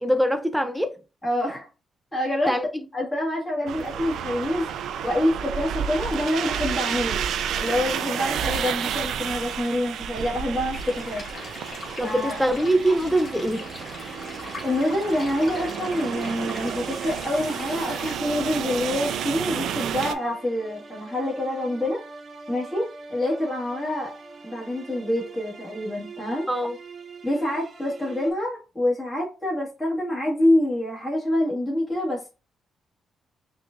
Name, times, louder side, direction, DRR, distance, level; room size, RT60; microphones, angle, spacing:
voice 1, 0.0-1.0 2.5-2.6 12.0-13.7 26.5-26.8, right 1 dB, ahead, 0.5 m, -23 dB
voice 2, 1.2-1.7 2.1-2.5 2.9-4.7 5.0-7.2 7.6-11.6 12.0-12.4 14.6-22.0 22.5-24.1 24.4-26.5 27.2-32.3, left 1 dB, 20° left, 1.8 m, -26 dB
sound 1, 3.7-20.1, right 8 dB, 80° right, 0.4 m, -31 dB
sound 2, 10.7-18.2, left 2 dB, 40° left, 1.7 m, -40 dB
sound 3, 12.2-28.3, right 4 dB, 45° right, 0.9 m, -44 dB
5.9 x 2.6 x 2.5 m
cardioid pair, 90°, 0 cm